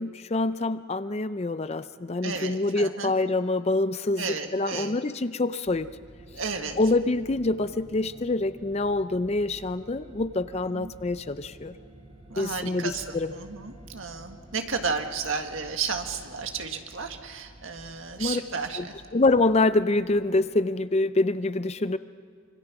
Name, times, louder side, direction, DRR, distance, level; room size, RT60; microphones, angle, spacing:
voice 1, 0.0-4.2 4.5-5.9 6.8-11.7 12.4-13.3 18.2-18.4 18.8-18.9 19.1-22.0, left 2 dB, 30° left, 13 dB, 0.5 m, -26 dB
voice 2, 2.2-3.1 4.2-5.0 6.3-6.8 10.7-10.9 12.3-18.9 21.8-22.0, right 5 dB, 70° right, 5 dB, 1.7 m, -33 dB
sound 1, 5.6-20.4, equal, 30° right, 3.9 m, -50 dB
26.0 x 24.0 x 6.0 m, 2.2 s
head